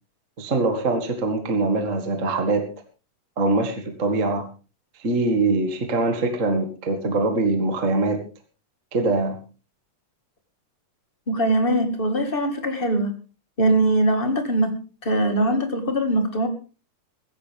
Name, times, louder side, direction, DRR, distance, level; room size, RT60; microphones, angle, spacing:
voice 1, 0.4-2.7 3.4-4.5 5.0-8.2 8.9-9.4, right 3 dB, 30° right, 5 dB, 1.6 m, -23 dB
voice 2, 11.3-13.1 13.6-14.8 15.0-16.5, right 1 dB, 25° left, 6 dB, 1.3 m, -21 dB
15.5 x 15.5 x 3.5 m, 0.34 s
omnidirectional pair, 4.0 m